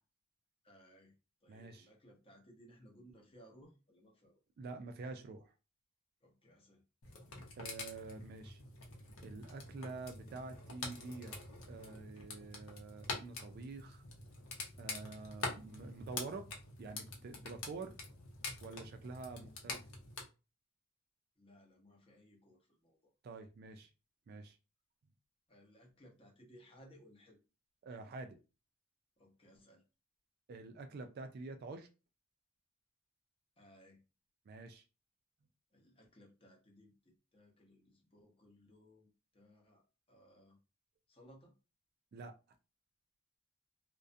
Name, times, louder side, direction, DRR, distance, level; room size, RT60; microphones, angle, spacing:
voice 1, 0.6-1.1 1.4-4.3 6.2-6.8 21.4-23.1 25.5-27.4 29.2-29.8 33.6-34.0 35.7-40.6 41.1-41.5, equal, 25° left, 0 dB, 0.7 m, -62 dB
voice 2, 1.5-1.9 4.6-5.5 7.6-8.6 9.2-11.3 11.7-14.0 14.8-16.5 16.8-17.9 18.6-19.8 23.2-23.9 24.3-24.6 27.8-28.4 30.5-31.9 34.5-34.8 42.1-42.4, right 3 dB, 45° right, 7 dB, 0.3 m, -47 dB
sound 1, 7.0-20.2, left 3 dB, 90° left, 0.7 m, -46 dB
2.3 x 2.1 x 2.5 m, 0.31 s
head